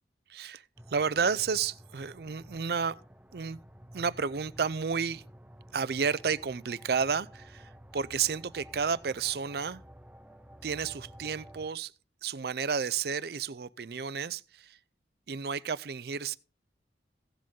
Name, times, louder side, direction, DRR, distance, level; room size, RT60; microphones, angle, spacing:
voice 1, 0.3-0.6 0.9-3.0 3.3-3.6 3.9-5.2 5.7-9.8 10.6-11.9 12.2-14.8 15.3-16.4, right 6 dB, 55° right, 0.5 m, -31 dB
sound 1, 0.8-11.7, equal, 5° right, 0.6 m, -52 dB
16.5 x 7.6 x 3.7 m
head